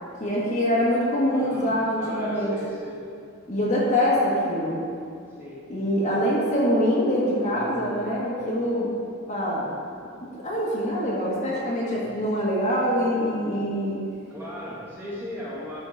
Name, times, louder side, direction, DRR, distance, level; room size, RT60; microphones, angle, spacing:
voice 1, 0.2-2.5 3.5-4.8 5.7-8.9 9.3-9.6 10.3-14.0, equal, 35° left, -6 dB, 1.5 m, -24 dB
voice 2, 1.3-3.0 5.4-5.6 7.4-7.9 11.9-12.0 14.3-15.8, left 1 dB, 10° right, -9 dB, 2.0 m, -38 dB
12.5 x 4.3 x 4.4 m, 2.4 s
head